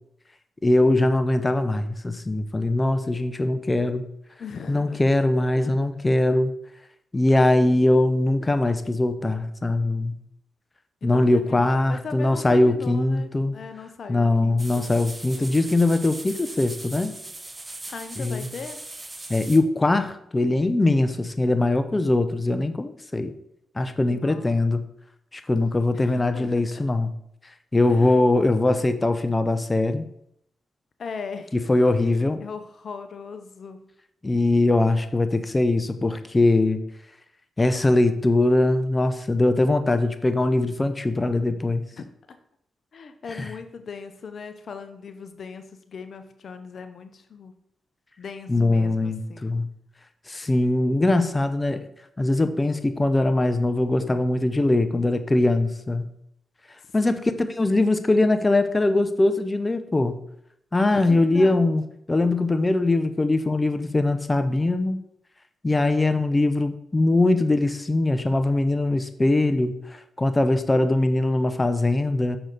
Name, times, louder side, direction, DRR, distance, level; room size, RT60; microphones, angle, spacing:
voice 1, 0.6-4.0 4.7-6.5 7.1-10.2 11.0-13.5 14.1-17.1 18.2-18.5 19.3-23.3 23.8-24.8 25.3-27.1 27.7-30.0 31.5-32.4 34.2-36.8 37.6-41.8 43.3-43.5 48.5-49.7 50.3-51.9 52.2-56.1 56.9-60.2 60.7-61.8 62.1-65.0 65.6-72.4, left 2 dB, 25° left, 9 dB, 0.7 m, -21 dB
voice 2, 4.4-5.0 5.6-5.7 11.0-14.9 17.9-18.8 24.1-24.5 25.9-26.8 27.9-28.2 31.0-31.5 32.0-32.1 32.4-33.8 42.0-42.1 42.9-47.5 48.2-49.5 57.1-57.4 60.9-61.7, left 5 dB, 60° left, 9 dB, 0.7 m, -39 dB
sound 1, 14.6-19.6, right 2 dB, 25° right, 1.0 m, -39 dB
6.5 x 6.0 x 4.0 m, 0.74 s
supercardioid pair, 50°, 0 cm